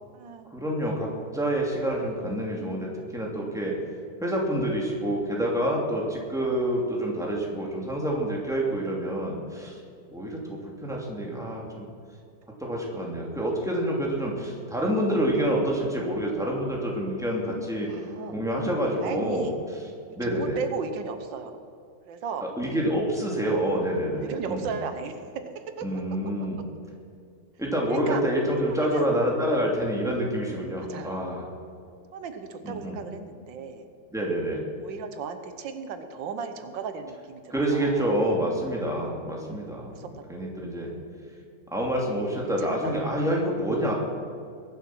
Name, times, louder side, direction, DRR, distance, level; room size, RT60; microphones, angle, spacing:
voice 1, 0.0-0.5 17.9-18.4 19.0-19.6 20.1-21.6 22.1-22.5 24.1-26.0 27.9-28.2 28.7-29.1 30.8-31.2 32.1-33.8 34.8-38.2 39.8-40.1 40.9-41.0 42.6-43.2, right 6 dB, 85° right, 8 dB, 1.7 m, -36 dB
voice 2, 0.5-3.8 4.2-9.8 10.1-11.9 12.6-17.9 18.3-19.5 20.2-20.6 22.4-24.7 25.8-26.6 27.6-31.5 32.6-33.0 34.1-34.6 37.5-39.9 40.3-40.9 41.7-43.9, right 1 dB, ahead, -2 dB, 2.6 m, -27 dB
21.5 x 8.0 x 6.1 m, 2.5 s
omnidirectional pair, 2.0 m